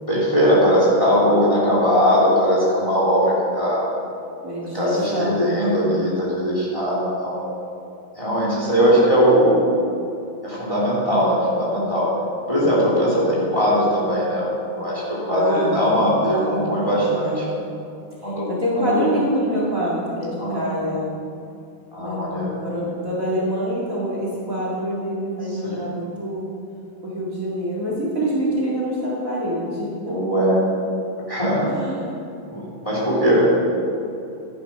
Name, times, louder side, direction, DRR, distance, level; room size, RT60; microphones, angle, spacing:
voice 1, 0.0-3.8 4.7-7.4 8.2-9.6 10.4-12.1 12.5-17.4 18.2-18.5 18.8-19.1 20.4-20.6 21.9-22.6 25.6-25.8 30.1-30.7 31.3-31.9 32.5-33.5, equal, 15° left, -6 dB, 3.3 m, -20 dB
voice 2, 4.4-5.8 15.3-17.6 18.2-21.1 22.0-26.5 27.0-30.2 31.6-32.2, equal, 40° right, -6 dB, 2.6 m, -26 dB
12.0 x 10.5 x 5.5 m, 2.7 s
omnidirectional pair, 2.2 m